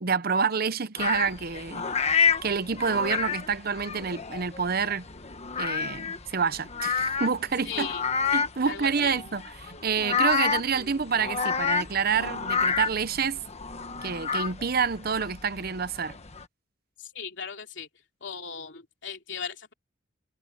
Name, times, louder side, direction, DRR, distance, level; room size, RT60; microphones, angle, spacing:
voice 1, 0.0-1.8 2.4-5.1 5.6-7.9 8.3-13.4 14.0-16.2, right 6 dB, 55° right, 0.8 m, -28 dB
sound 1, 1.0-16.4, left 6 dB, 35° left, 1.4 m, -30 dB
voice 2, 7.6-8.0 8.6-9.2 17.0-17.9 18.2-19.7, left 7 dB, 70° left, 3.3 m, -37 dB
head